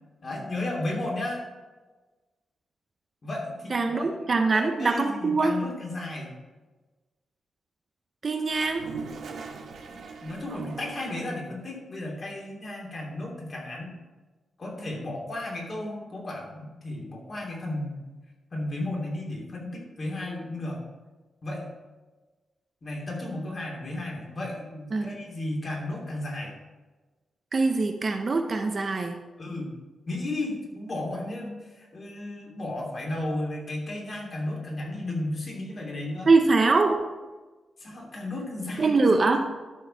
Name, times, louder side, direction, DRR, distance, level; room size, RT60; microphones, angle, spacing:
voice 1, 0.2-1.4 3.2-4.1 4.5-6.3 9.9-14.0 14.6-18.0 18.5-20.8 21.4-21.7 22.8-26.5 29.4-29.7 30.1-36.3 37.8-39.1, left 1 dB, 35° left, -2 dB, 2.8 m, -34 dB
voice 2, 3.7-5.6 8.2-8.8 24.9-25.1 27.5-29.2 36.3-37.0 38.8-39.4, right 3 dB, 35° right, 5 dB, 0.7 m, -23 dB
Toilet flush, 8.5-11.6, right 4 dB, 90° right, 1.2 m, -40 dB
12.5 x 4.7 x 5.7 m, 1.2 s
wide cardioid pair, 150°, 0 cm